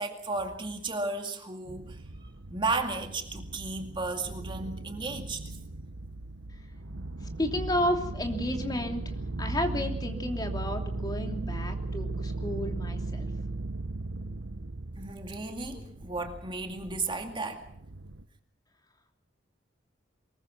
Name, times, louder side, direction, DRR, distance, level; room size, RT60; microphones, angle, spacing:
voice 1, 0.0-2.0 2.5-5.4 15.0-17.6, right 3 dB, 25° right, 4 dB, 2.2 m, -34 dB
sound 1, 1.7-18.2, right 2 dB, 80° right, 1.2 m, -37 dB
voice 2, 7.4-13.3, left 1 dB, 20° left, 3 dB, 3.0 m, -32 dB
24.0 x 21.5 x 6.0 m, 0.67 s
head